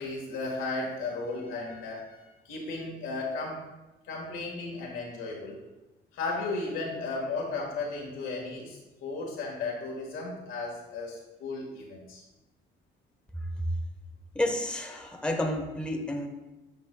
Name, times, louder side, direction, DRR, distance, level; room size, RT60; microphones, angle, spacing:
voice 1, 0.0-3.6 4.1-5.6 6.1-12.2, left 3 dB, 85° left, -2 dB, 1.6 m, -35 dB
voice 2, 13.4-13.7 14.3-16.3, left 1 dB, 5° left, 3 dB, 0.7 m, -30 dB
9.0 x 5.0 x 2.2 m, 1.1 s
cardioid pair, 90°, 20 cm